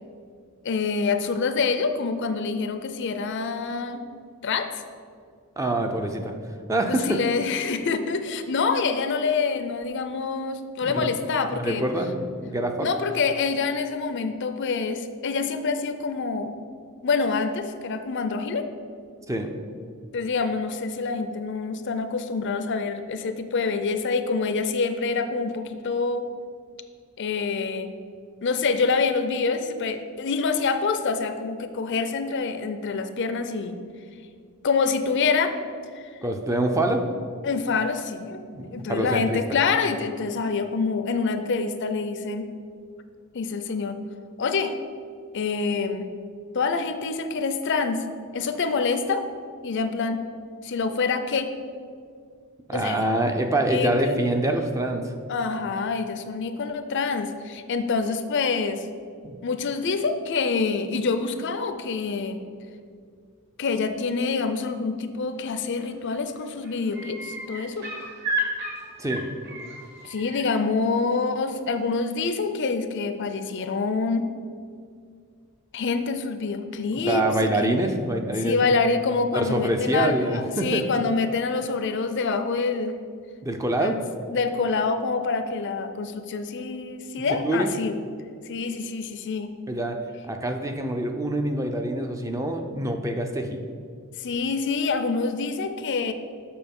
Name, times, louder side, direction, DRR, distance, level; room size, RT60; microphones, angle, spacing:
voice 1, 0.6-4.0 4.4-4.7 6.9-11.9 12.8-16.6 17.0-18.7 20.1-26.2 27.2-27.9 28.4-33.8 34.6-35.5 35.9-36.1 37.4-42.5 43.3-44.0 44.4-44.8 45.3-46.1 46.5-48.0 48.3-49.2 49.6-50.2 50.6-51.5 52.7-53.1 53.7-54.2 55.3-58.8 59.4-62.4 63.6-67.9 70.0-74.3 75.7-77.7 78.4-83.0 83.8-84.0 84.3-88.0 88.4-89.5 94.2-96.1, left 4 dB, 55° left, 9 dB, 0.5 m, -26 dB
voice 2, 5.6-6.3 6.7-7.2 10.8-11.1 11.5-12.9 19.3-19.6 36.2-37.0 38.5-39.4 52.7-55.1 59.2-59.4 69.0-69.2 76.9-78.7 79.3-80.9 83.4-84.0 87.4-87.7 89.7-90.0 90.2-93.6, right 1 dB, 15° right, 5 dB, 0.5 m, -25 dB
sound 1, 65.7-66.1 66.4-70.4 72.1-72.2, equal, 50° right, 1.9 m, -33 dB
6.9 x 5.9 x 5.3 m, 2.2 s
head